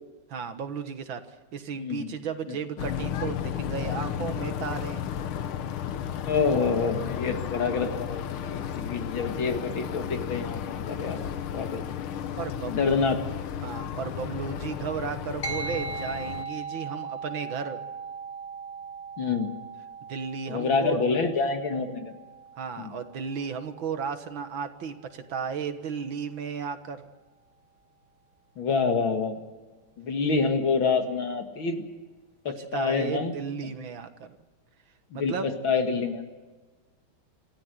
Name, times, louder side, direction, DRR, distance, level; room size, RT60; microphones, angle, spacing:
voice 1, 0.3-5.0 12.4-13.0 13.6-17.8 20.1-21.0 22.6-27.1 32.5-34.4 35.1-35.5, right 6 dB, 65° right, 9 dB, 2.1 m, -34 dB
voice 2, 1.8-2.1 2.5-2.6 6.2-11.8 12.7-13.2 19.2-19.5 20.5-22.1 22.8-22.9 28.6-29.4 30.0-31.8 32.4-33.3 35.1-36.2, left 4 dB, 65° left, 6 dB, 2.7 m, -27 dB
sound 1, 2.8-16.4, left 9 dB, 85° left, 1.9 m, -33 dB
sound 2, 15.4-25.1, right 4 dB, 35° left, 2.0 m, -39 dB
27.0 x 14.0 x 8.0 m, 1.3 s
omnidirectional pair, 2.4 m